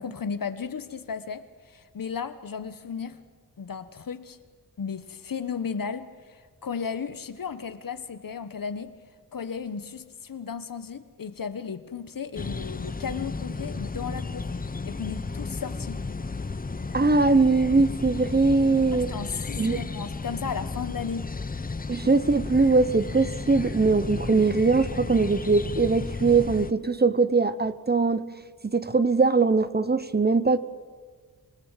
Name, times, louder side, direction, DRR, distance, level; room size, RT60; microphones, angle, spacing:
voice 1, 0.0-3.2 3.6-4.4 4.8-8.9 9.3-14.5 14.8-16.0 18.9-21.3, left 6 dB, 60° left, 12 dB, 1.3 m, -34 dB
sound 1, 12.3-26.7, left 3 dB, 25° left, 0.8 m, -34 dB
voice 2, 16.9-19.1 19.6-19.8 21.9-28.2 28.7-30.6, right 4 dB, 25° right, 14 dB, 0.8 m, -21 dB
26.5 x 18.5 x 7.5 m, 1.5 s
wide cardioid pair, 80°, 37 cm